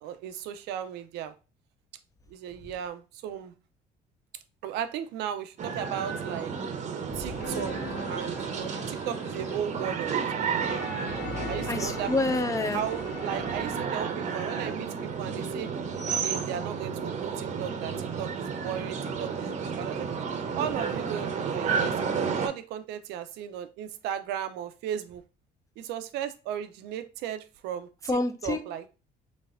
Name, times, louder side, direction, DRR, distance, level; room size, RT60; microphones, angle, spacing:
voice 1, 0.0-1.3 2.3-3.5 4.6-6.5 7.2-7.8 8.1-10.9 11.5-12.1 12.7-14.1 14.3-14.9 15.2-15.7 16.2-17.9 18.2-20.1 20.6-25.2 25.8-27.9 28.4-28.8, right 9 dB, 90° right, 10 dB, 0.5 m, -36 dB
sound 1, 5.6-22.5, right 6 dB, 45° right, 0.7 m, -32 dB
sound 2, 5.8-6.5 7.3-9.8 10.6-14.1, left 2 dB, 75° left, 1.3 m, -41 dB
voice 2, 11.7-12.8 28.0-28.6, left 2 dB, 20° left, 10 dB, 0.5 m, -28 dB
4.0 x 3.2 x 2.5 m, 0.32 s
cardioid pair, 110°, 17 cm